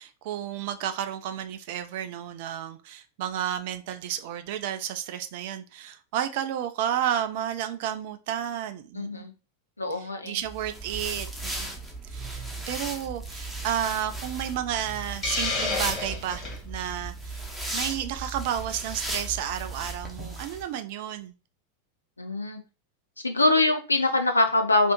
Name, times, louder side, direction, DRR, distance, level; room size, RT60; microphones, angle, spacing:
voice 1, 0.0-9.3 9.9-11.8 12.1-17.4 17.7-21.3, right 10 dB, 50° right, 0.3 m, -32 dB
voice 2, 8.9-9.3 9.8-10.4 22.2-22.6 23.2-24.9, left 2 dB, 80° left, 0.5 m, -23 dB
sound 1, 10.4-20.6, right 2 dB, ahead, 0.7 m, -36 dB
Hiss, 15.2-16.6, left 3 dB, 25° left, 1.6 m, -29 dB
3.4 x 2.5 x 2.9 m
figure-of-eight pair, 90°, 0 cm